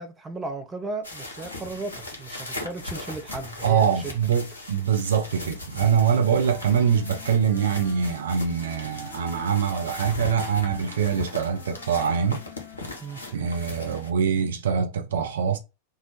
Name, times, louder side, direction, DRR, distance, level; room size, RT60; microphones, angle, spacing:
voice 1, 0.0-4.2 13.0-13.2, right 3 dB, 15° right, 0.5 m, -35 dB
sound 1, 1.0-14.1, left 2 dB, 75° left, 0.8 m, -39 dB
voice 2, 3.6-12.4 13.3-15.6, right 7 dB, 60° right, 0.4 m, -24 dB
Wind instrument woodwind instrument, 5.8-14.4, left 7 dB, 20° left, 0.9 m, -49 dB
2.8 x 2.0 x 2.8 m
figure-of-eight pair, 90°, 0 cm